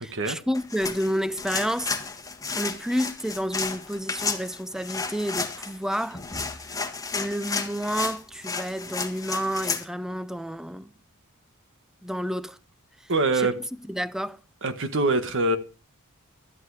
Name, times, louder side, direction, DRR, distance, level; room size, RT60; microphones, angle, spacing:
voice 1, 0.0-1.9 2.5-6.2 6.6-6.7 7.1-10.9 12.0-12.6 13.0-13.5 13.9-14.4, equal, ahead, 0.5 m, -30 dB
sound 1, 0.5-9.9, left 4 dB, 15° left, 1.6 m, -32 dB
voice 2, 13.1-13.5 14.6-15.6, right 2 dB, 60° right, 1.6 m, -23 dB
13.0 x 11.0 x 4.9 m
head